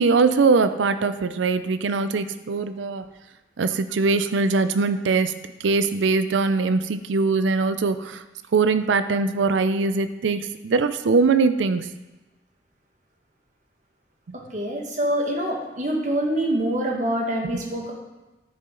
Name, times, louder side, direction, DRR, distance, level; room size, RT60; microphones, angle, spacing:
voice 1, 0.0-3.0 3.6-8.2 8.5-11.9, right 4 dB, 90° right, 11 dB, 0.5 m, -22 dB
voice 2, 14.3-17.9, right 1 dB, 40° right, 0 dB, 1.6 m, -25 dB
9.6 x 9.6 x 3.8 m, 1.1 s
head